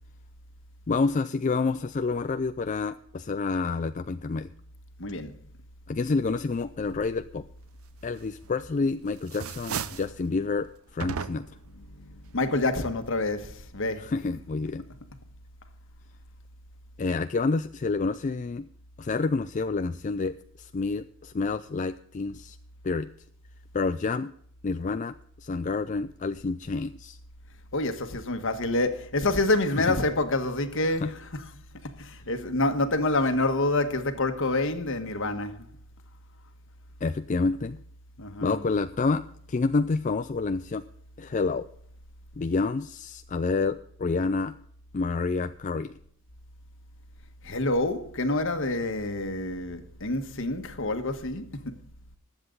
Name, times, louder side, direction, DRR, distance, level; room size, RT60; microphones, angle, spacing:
voice 1, 0.9-4.5 5.9-7.4 8.0-10.7 10.9-11.4 14.0-14.8 17.0-18.7 19.0-22.6 22.8-23.1 23.7-24.3 24.6-27.2 29.8-29.9 31.0-31.1 37.0-37.8 38.4-39.2 39.5-40.8 41.2-41.7 42.4-44.5 44.9-45.9, left 4 dB, 35° left, 0.4 m, -28 dB
voice 2, 5.0-5.3 12.0-14.1 27.7-31.4 31.8-35.5 38.2-38.6 47.4-51.7, left 2 dB, 60° left, 1.5 m, -27 dB
sound 1, 8.4-8.9 9.2-10.2 11.0-11.7, right 6 dB, 70° right, 0.7 m, -34 dB
20.5 x 7.9 x 3.9 m
head